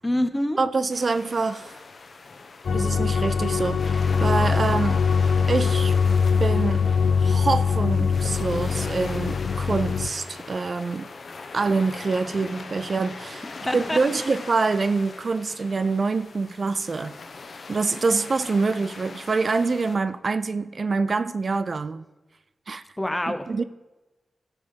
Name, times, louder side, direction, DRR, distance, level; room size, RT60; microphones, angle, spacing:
voice 1, 0.0-0.6 13.7-14.0 23.0-23.4, left 1 dB, 15° left, 8 dB, 1.0 m, -25 dB
voice 2, 0.6-1.8 2.7-5.0 5.5-6.0 6.4-6.8 7.2-11.1 11.5-13.4 13.7-17.1 17.7-22.0 22.7-22.8 23.5-23.6, right 4 dB, 55° right, 13 dB, 0.5 m, -25 dB
sound 1, 0.9-20.0, left 4 dB, 60° left, 1.0 m, -40 dB
sound 2, 2.6-10.1, left 6 dB, 80° left, 0.4 m, -22 dB
13.0 x 5.9 x 6.8 m, 1.1 s
cardioid pair, 70°, 0 cm